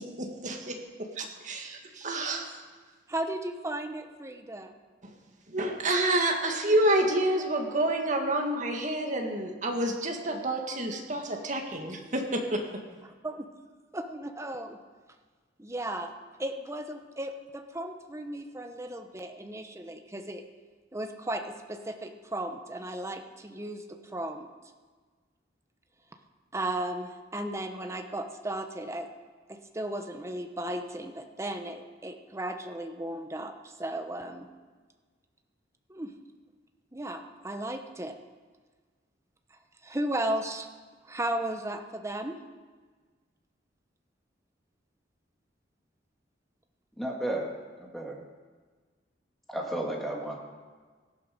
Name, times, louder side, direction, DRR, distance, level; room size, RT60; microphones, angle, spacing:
voice 1, 0.0-2.6 5.0-5.2 5.5-12.8, right 1 dB, 45° right, 2 dB, 1.9 m, -29 dB
voice 2, 3.1-4.7 13.0-13.5 13.9-14.8 15.6-16.1 16.4-20.4 20.9-24.5 26.5-29.1 29.5-34.5 35.9-36.1 36.9-38.2 39.8-40.7 41.0-42.4, right 1 dB, 15° right, 5 dB, 1.0 m, -35 dB
voice 3, 47.0-47.5 47.8-48.2 49.5-50.4, right 1 dB, ahead, -2 dB, 2.2 m, -33 dB
17.5 x 11.5 x 5.2 m, 1.4 s
head